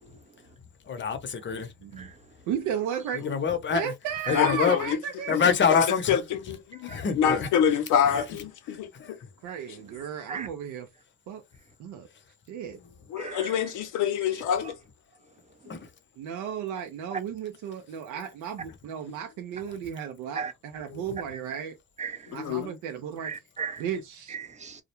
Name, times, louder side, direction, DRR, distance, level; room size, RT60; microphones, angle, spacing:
voice 1, 0.9-1.7 3.2-3.8 4.3-4.8 5.3-6.1 6.8-7.5 9.0-9.1 15.7-15.8, left 6 dB, 40° left, 0.7 m, -25 dB
voice 2, 2.5-3.2 3.7-5.9 9.4-10.9 11.3-11.4 11.8-12.1 12.5-12.8 16.2-21.8 22.3-23.3 23.8-24.4, right 8 dB, 85° right, 0.5 m, -34 dB
voice 3, 4.3-5.0 5.3-9.2 13.1-14.7 20.9-21.0 22.3-22.7, left 8 dB, 85° left, 0.6 m, -26 dB
voice 4, 13.2-13.6 14.6-14.7 15.6-15.7 17.1-17.2 20.3-20.5 22.0-22.4 23.2-23.8 24.3-24.8, right 5 dB, 25° right, 0.4 m, -36 dB
2.3 x 2.1 x 2.8 m
cardioid pair, 90°, 30 cm